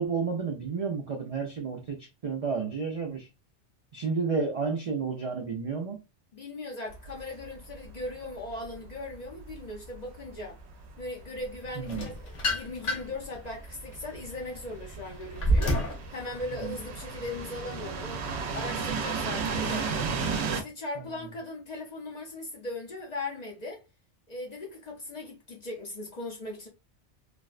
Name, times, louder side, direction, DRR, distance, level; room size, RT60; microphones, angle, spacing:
voice 1, 0.0-3.3 3.9-6.0 11.8-12.1 16.5-16.8 21.0-21.3, right 5 dB, 55° right, 0.4 m, -31 dB
voice 2, 6.3-10.6 11.0-15.7 16.1-18.3 18.5-19.9 20.5-23.8 24.3-26.7, left 2 dB, 45° left, 0.6 m, -39 dB
sound 1, 6.9-20.6, right 5 dB, 70° right, 0.8 m, -36 dB
sound 2, 11.9-13.2 13.8-16.0, equal, 85° left, 1.1 m, -28 dB
3.3 x 2.1 x 2.4 m
omnidirectional pair, 1.2 m